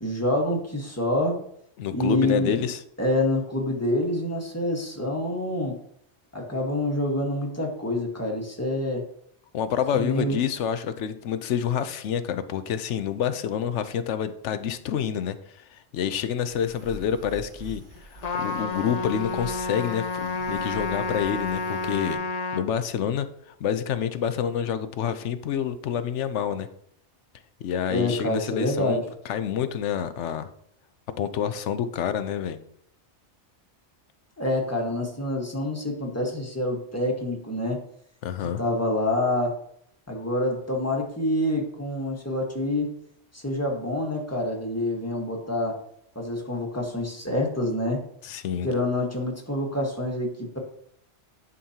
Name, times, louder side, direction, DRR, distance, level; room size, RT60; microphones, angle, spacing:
voice 1, 0.0-1.4 1.9-2.6 3.0-5.8 6.3-9.0 9.9-10.4 27.9-29.0 34.4-37.8 38.6-39.6 40.1-42.9 43.3-45.8 46.1-48.0 48.6-50.6, left 1 dB, 15° left, 0 dB, 1.4 m, -27 dB
voice 2, 1.8-2.8 9.5-22.2 22.5-23.3 23.6-26.7 27.6-30.5 31.2-32.6 38.2-38.6 48.2-48.7, left 8 dB, 75° left, 11 dB, 0.9 m, -28 dB
sound 1, 16.5-22.1, right 2 dB, 45° right, 1.5 m, -46 dB
Trumpet, 18.2-22.7, left 3 dB, 45° left, 0.5 m, -30 dB
10.0 x 5.4 x 2.8 m, 0.69 s
omnidirectional pair, 1.2 m